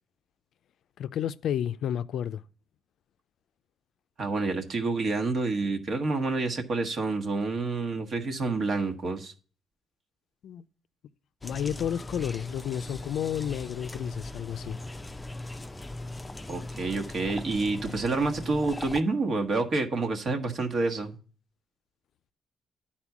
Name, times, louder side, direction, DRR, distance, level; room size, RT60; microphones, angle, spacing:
voice 1, 1.0-2.4 10.4-10.6 11.4-14.8, left 9 dB, 70° left, 0.4 m, -31 dB
voice 2, 4.2-9.3 16.5-21.1, right 3 dB, 50° right, 1.4 m, -28 dB
sound 1, 11.4-19.0, left 2 dB, 15° left, 0.5 m, -39 dB
10.0 x 4.3 x 6.0 m
cardioid pair, 90°, 0 cm